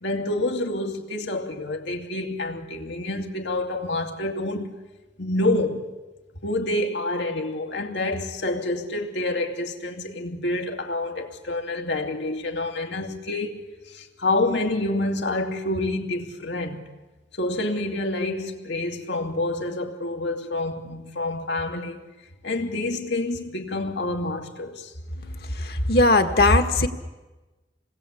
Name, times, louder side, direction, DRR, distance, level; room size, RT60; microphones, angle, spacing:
voice 1, 0.0-4.8 5.2-5.9 6.4-16.8 17.3-22.0 22.4-24.9, left 2 dB, 85° left, 2.8 m, -28 dB
voice 2, 25.2-26.9, left 2 dB, 60° left, 1.8 m, -20 dB
27.0 x 20.0 x 8.5 m
head